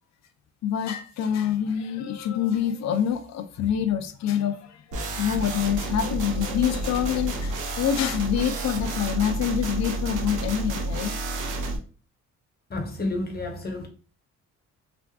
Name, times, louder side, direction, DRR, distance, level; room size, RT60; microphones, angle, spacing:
voice 1, 0.6-11.1, left 9 dB, 65° left, 0.5 m, -26 dB
sound 1, 4.9-11.8, right 2 dB, 80° right, 0.8 m, -30 dB
voice 2, 12.7-13.9, left 2 dB, 30° left, 0.9 m, -30 dB
3.5 x 2.5 x 2.3 m
cardioid pair, 90°, 30 cm